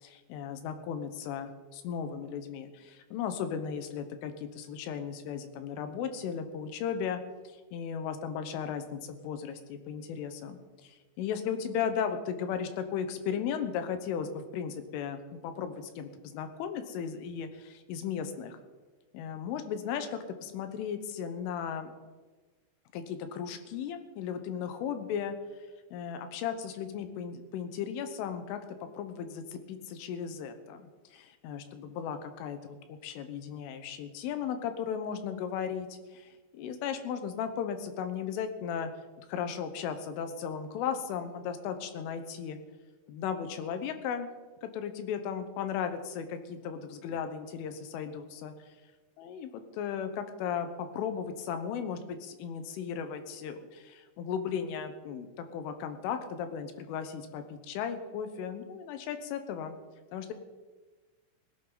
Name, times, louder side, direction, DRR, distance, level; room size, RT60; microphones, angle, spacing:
voice 1, 0.0-18.6 19.1-21.9 22.9-25.4 25.9-28.6 29.0-38.9 39.3-42.6 43.1-44.3 44.6-48.5 49.2-59.8 60.1-60.3, left 7 dB, 85° left, 8 dB, 3.6 m, -36 dB
18.5 x 17.0 x 4.0 m, 1.3 s
omnidirectional pair, 5.6 m